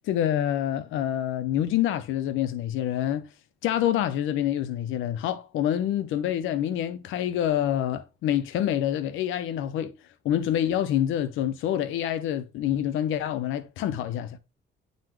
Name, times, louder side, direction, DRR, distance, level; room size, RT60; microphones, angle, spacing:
voice 1, 0.0-3.3 3.6-9.9 10.2-14.4, left 11 dB, 90° left, 0.6 m, -27 dB
8.9 x 4.0 x 3.1 m
cardioid pair, 90°, 20 cm